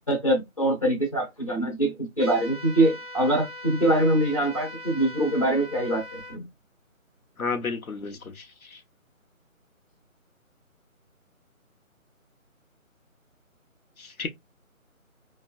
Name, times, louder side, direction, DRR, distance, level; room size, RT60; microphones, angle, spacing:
voice 1, 0.1-6.5, right 1 dB, 25° left, 0.7 m, -24 dB
sound 1, 2.2-6.4, left 1 dB, 40° right, 0.4 m, -41 dB
voice 2, 7.4-8.8 14.0-14.3, left 4 dB, 80° left, 0.9 m, -32 dB
3.5 x 2.2 x 2.5 m
figure-of-eight pair, 165°, 42 cm